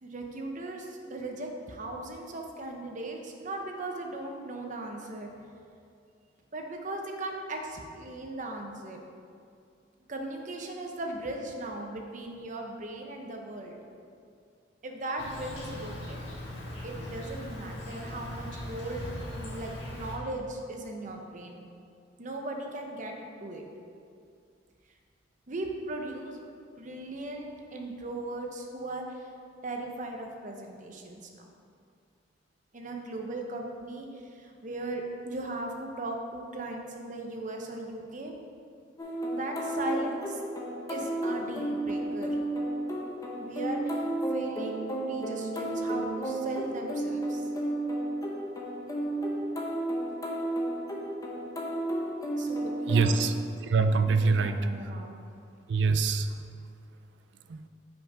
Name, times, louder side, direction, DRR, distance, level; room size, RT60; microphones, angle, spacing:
voice 1, 0.0-5.3 6.5-9.0 10.1-13.8 14.8-16.3 16.8-21.7 22.2-23.6 25.5-26.4 26.8-29.3 29.6-31.4 32.7-38.3 39.3-40.4 40.9-42.4 43.4-44.0 44.3-47.5 52.3-53.3 54.1-55.1, right 2 dB, 40° right, 2 dB, 0.8 m, -38 dB
Insect, 15.2-20.2, left 1 dB, 80° left, 1.6 m, -39 dB
sound 1, 39.0-53.1, right 1 dB, 20° left, 0.8 m, -32 dB
voice 2, 52.9-53.3 53.6-54.5 55.7-56.3 57.5-57.6, right 4 dB, 65° right, 9 dB, 0.4 m, -24 dB
5.8 x 5.4 x 5.0 m, 2.4 s
head